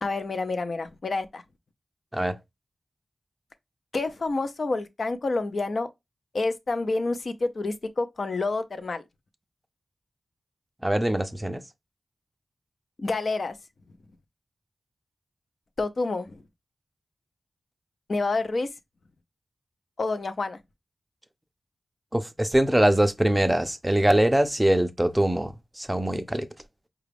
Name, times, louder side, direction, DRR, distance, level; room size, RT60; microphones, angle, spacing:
voice 1, 0.0-1.4 3.9-5.9 6.3-9.0 13.0-13.6 15.8-16.4 18.1-18.7 20.0-20.6, left 3 dB, 60° left, 0.5 m, -28 dB
voice 2, 10.8-11.6 22.1-26.5, right 1 dB, 10° right, 0.4 m, -23 dB
4.9 x 2.3 x 3.3 m
wide cardioid pair, 100°, 0 cm